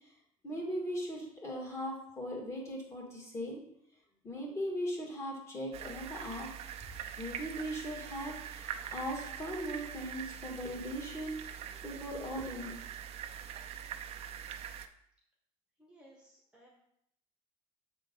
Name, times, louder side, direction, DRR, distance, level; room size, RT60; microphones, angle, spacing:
voice 1, 0.4-3.6 4.2-6.5 7.2-11.6 11.8-12.8, equal, 20° left, -1 dB, 2.0 m, -39 dB
sound 1, 5.7-14.9, right 9 dB, 50° right, 0.6 m, -43 dB
voice 2, 15.8-16.7, right 1 dB, 10° right, -2 dB, 1.2 m, -59 dB
7.6 x 3.7 x 5.4 m, 0.73 s
cardioid pair, 135°, 13 cm